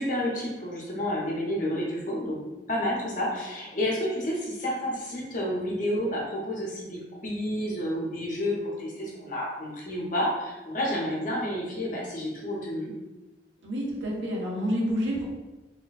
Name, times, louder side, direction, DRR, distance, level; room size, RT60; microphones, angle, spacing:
voice 1, 0.0-2.4 2.7-12.9, left 1 dB, 45° left, -3 dB, 0.8 m, -30 dB
voice 2, 13.6-15.3, equal, 85° right, -2 dB, 0.9 m, -28 dB
3.1 x 2.2 x 4.0 m, 1.1 s
head